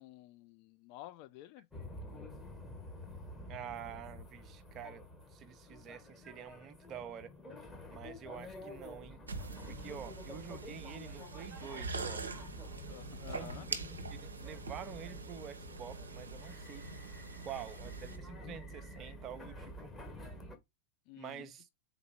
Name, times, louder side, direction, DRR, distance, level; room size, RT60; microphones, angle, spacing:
voice 1, 0.0-1.7 12.9-13.7 21.1-21.5, left 16 dB, 45° left, 0.4 m, -51 dB
sound 1, 1.7-20.6, left 1 dB, 10° left, 1.4 m, -50 dB
voice 2, 3.5-5.0 5.3-7.3 7.9-9.2 9.7-12.3 13.3-16.9 17.4-19.9 21.2-21.7, right 8 dB, 30° right, 0.7 m, -48 dB
sound 2, 9.3-18.2, right 3 dB, 75° right, 0.7 m, -44 dB
4.0 x 2.8 x 4.4 m
figure-of-eight pair, 90°, 0 cm